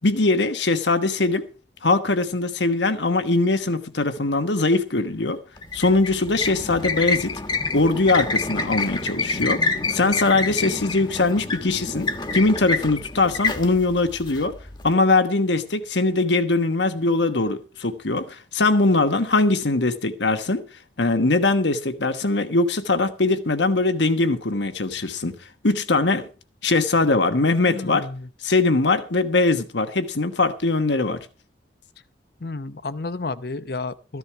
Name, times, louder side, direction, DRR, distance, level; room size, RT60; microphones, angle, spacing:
voice 1, 0.0-1.5 1.8-5.4 5.7-7.3 7.7-14.5 14.8-20.6 21.0-25.3 25.6-26.3 26.6-28.1 28.4-31.2, left 3 dB, 85° left, 1.3 m, -21 dB
sound 1, 5.6-14.9, left 3 dB, 25° left, 1.2 m, -27 dB
voice 2, 27.7-28.3 32.4-34.2, left 3 dB, 60° left, 0.7 m, -31 dB
14.5 x 11.0 x 4.6 m
head